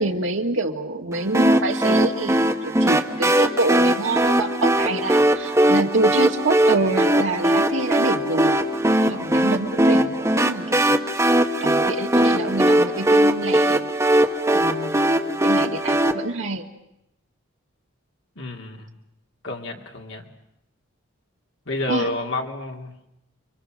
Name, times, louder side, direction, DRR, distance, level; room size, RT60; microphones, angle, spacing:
voice 1, 0.0-8.6 9.0-10.8 11.6-13.9 14.5-16.6 21.9-22.1, right 2 dB, 65° right, 3 dB, 2.0 m, -26 dB
sound 1, 1.3-16.1, right 1 dB, 15° right, 1.0 m, -20 dB
voice 2, 18.4-19.0 19.4-20.2 21.7-23.1, left 2 dB, 60° left, 2 dB, 2.7 m, -30 dB
29.5 x 23.0 x 6.4 m, 0.82 s
head